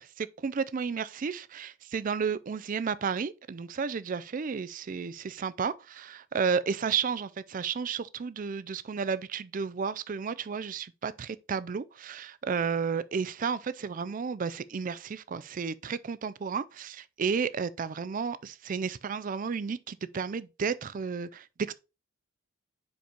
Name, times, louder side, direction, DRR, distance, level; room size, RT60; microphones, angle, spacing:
voice 1, 0.2-21.7, right 6 dB, 40° right, 0.4 m, -32 dB
5.2 x 5.2 x 4.3 m
head